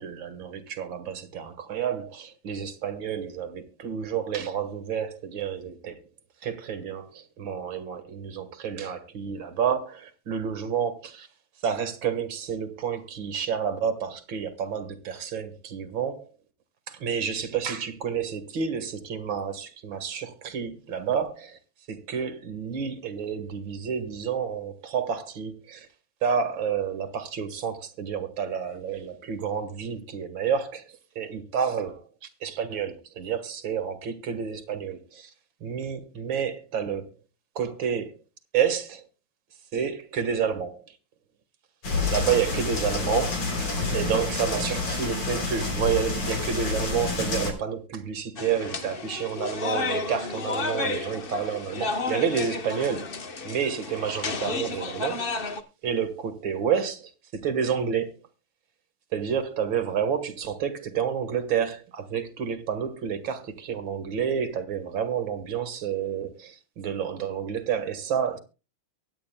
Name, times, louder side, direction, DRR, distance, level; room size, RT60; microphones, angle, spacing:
voice 1, 0.0-6.0 6.4-11.3 11.6-16.3 16.9-21.6 21.9-25.9 26.2-35.3 35.6-37.1 37.6-38.2 38.5-39.0 39.7-41.0 42.1-55.3 55.8-58.2 59.1-68.4, right 7 dB, 60° right, 2.2 m, -30 dB
sound 1, 41.8-47.5, left 3 dB, 80° left, 4.5 m, -28 dB
sound 2, 48.4-55.6, left 3 dB, 40° left, 0.8 m, -32 dB
23.0 x 9.1 x 2.3 m
omnidirectional pair, 2.4 m